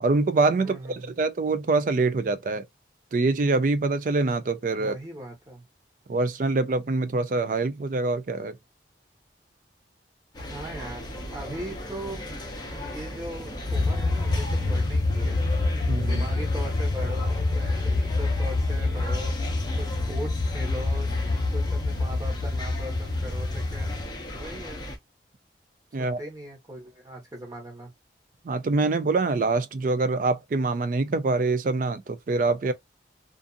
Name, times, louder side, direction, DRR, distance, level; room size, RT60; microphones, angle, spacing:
voice 1, 0.0-2.6 3.1-4.9 6.1-8.6 15.9-16.3 25.9-26.2 28.4-32.7, right 3 dB, 45° right, 0.3 m, -25 dB
voice 2, 0.6-1.1 4.7-5.6 10.5-11.0 11.3-12.4 12.7-15.4 16.0-19.3 19.7-21.1 21.5-24.0 24.3-24.9 26.0-27.9, right 1 dB, 20° right, 1.1 m, -39 dB
sound 1, 10.3-25.0, left 1 dB, 25° left, 0.7 m, -37 dB
sound 2, 13.7-24.0, left 2 dB, 70° left, 0.7 m, -26 dB
2.5 x 2.5 x 2.4 m
head